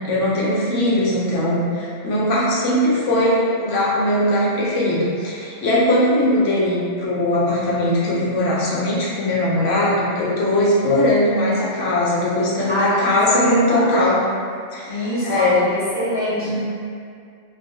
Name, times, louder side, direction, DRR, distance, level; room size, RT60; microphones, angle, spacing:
voice 1, 0.0-14.3 14.7-15.7 16.4-16.6, left 1 dB, 75° left, -5 dB, 0.9 m, -20 dB
voice 2, 12.7-13.9 14.9-16.5, equal, 10° right, -14 dB, 1.0 m, -24 dB
3.8 x 2.4 x 2.7 m, 2.3 s
omnidirectional pair, 1.3 m